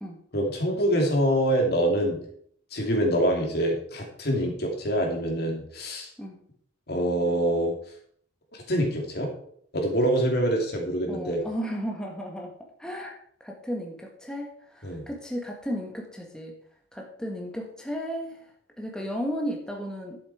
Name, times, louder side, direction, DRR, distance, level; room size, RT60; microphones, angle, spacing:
voice 1, 0.3-2.2 2.7-6.1 6.9-7.7 8.5-9.3 9.7-11.4 14.8-15.0, equal, 60° left, 1 dB, 3.0 m, -25 dB
voice 2, 11.1-12.5 12.8-16.5 16.9-18.5 18.8-20.2, equal, 5° left, 1 dB, 1.6 m, -34 dB
11.5 x 7.6 x 4.9 m, 0.62 s
head